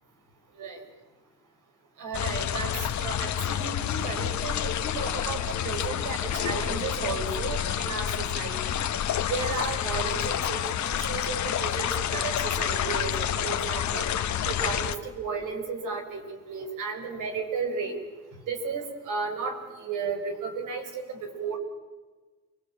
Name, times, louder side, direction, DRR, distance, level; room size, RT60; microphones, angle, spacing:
voice 1, 2.0-8.9 9.2-14.1 14.5-18.0 18.5-21.6, right 5 dB, 80° right, 4 dB, 5.7 m, -34 dB
sound 1, 2.1-14.9, left 10 dB, 65° left, 1.6 m, -29 dB
29.5 x 21.5 x 8.9 m, 1.3 s
cardioid pair, 75°, 31 cm